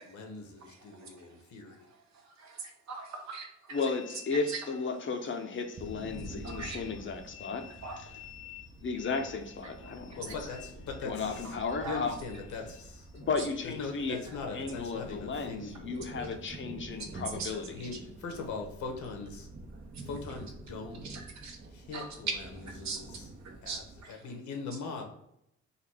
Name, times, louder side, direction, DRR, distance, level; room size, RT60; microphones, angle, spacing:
voice 1, 0.0-1.8 10.1-11.5 11.8-13.1 13.6-15.9 17.7-19.5 20.0-21.0 21.7-22.3 22.8-23.3 23.6-23.8 24.1-25.0, left 4 dB, 70° left, 1.2 m, -41 dB
voice 2, 0.6-1.4 1.7-3.9 4.3-4.6 6.2-7.0 7.7-8.0 9.6-10.6 11.4-11.5 11.8-12.0 13.4-13.5 16.2-16.3 17.0-17.1 17.4-18.0 19.9-20.0 21.0-21.6 21.9-24.2, right 4 dB, 65° right, 1.1 m, -42 dB
voice 3, 3.7-10.3 11.0-12.1 13.1-14.2 14.5-17.6, left 4 dB, 40° left, 0.8 m, -35 dB
sound 1, 5.7-24.0, right 2 dB, 30° right, 0.7 m, -47 dB
4.1 x 2.6 x 4.5 m
cardioid pair, 90°, 30 cm